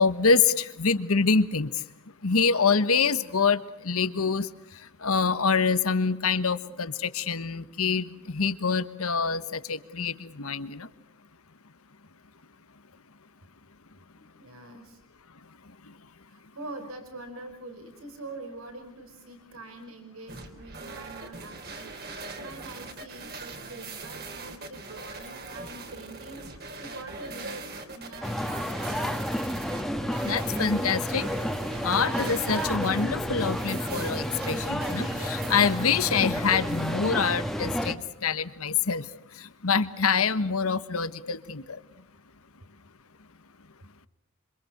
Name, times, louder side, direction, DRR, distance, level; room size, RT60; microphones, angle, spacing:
voice 1, 0.0-1.7 2.2-4.5 5.0-10.9 30.2-31.3 31.8-39.0 39.6-41.8, left 5 dB, 85° left, 13 dB, 1.3 m, -25 dB
voice 2, 14.4-15.0 16.3-27.7 27.9-29.1, right 2 dB, 80° right, 6 dB, 5.2 m, -44 dB
sound 1, 20.3-37.0, right 3 dB, 50° right, 3.4 m, -41 dB
sound 2, 28.2-37.9, equal, ahead, 1.6 m, -31 dB
27.0 x 26.0 x 6.7 m, 0.72 s
head